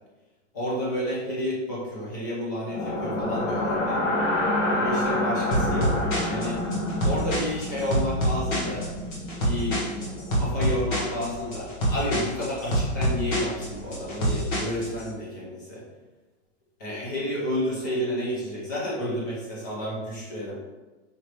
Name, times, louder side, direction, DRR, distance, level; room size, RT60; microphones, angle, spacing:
voice 1, 0.5-4.0 4.7-6.6 7.0-8.9 9.4-9.8 10.4-15.8 16.8-20.5, equal, 15° left, -5 dB, 0.4 m, -30 dB
sound 1, 2.7-10.7, left 1 dB, 85° left, 1.0 m, -28 dB
sound 2, 5.5-15.0, equal, 40° left, 1.0 m, -27 dB
5.0 x 3.1 x 2.9 m, 1.2 s
hypercardioid pair, 175°, 37 cm